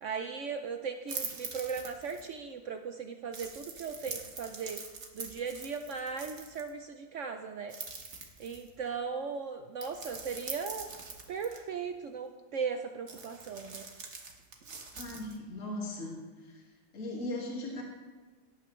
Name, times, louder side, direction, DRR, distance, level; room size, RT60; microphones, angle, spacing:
voice 1, 0.0-4.8 5.1-7.7 8.4-10.9 11.3-13.9, right 5 dB, 75° right, 6 dB, 0.7 m, -37 dB
sound 1, 1.1-2.3 3.3-6.7 7.7-8.8 9.8-11.6 13.1-15.4, right 4 dB, 45° right, 1.4 m, -43 dB
voice 2, 14.9-16.6 16.9-17.8, left 1 dB, 45° left, -2 dB, 2.3 m, -38 dB
17.5 x 8.5 x 3.2 m, 1.4 s
omnidirectional pair, 2.0 m